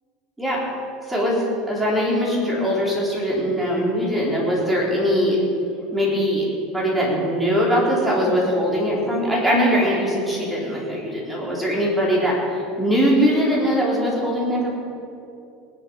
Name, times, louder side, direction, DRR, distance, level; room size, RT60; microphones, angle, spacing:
voice 1, 1.1-5.4 5.9-6.5 6.7-14.7, equal, 5° right, -5 dB, 4.0 m, -21 dB
19.0 x 11.0 x 5.4 m, 2.7 s
supercardioid pair, 140°, 0 cm